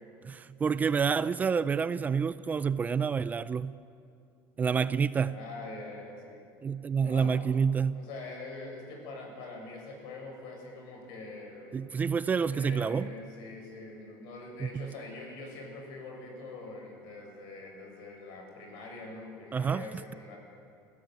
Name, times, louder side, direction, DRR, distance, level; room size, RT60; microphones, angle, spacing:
voice 1, 0.2-3.7 4.6-5.4 6.6-8.0 11.7-13.1 14.6-14.9 19.5-19.8, right 6 dB, 20° right, 15 dB, 0.4 m, -28 dB
voice 2, 5.2-6.4 7.0-7.3 7.9-12.0 12.5-20.4, left 3 dB, 70° left, 1 dB, 7.5 m, -44 dB
28.0 x 16.0 x 8.1 m, 2.5 s
cardioid pair, 145°, 8 cm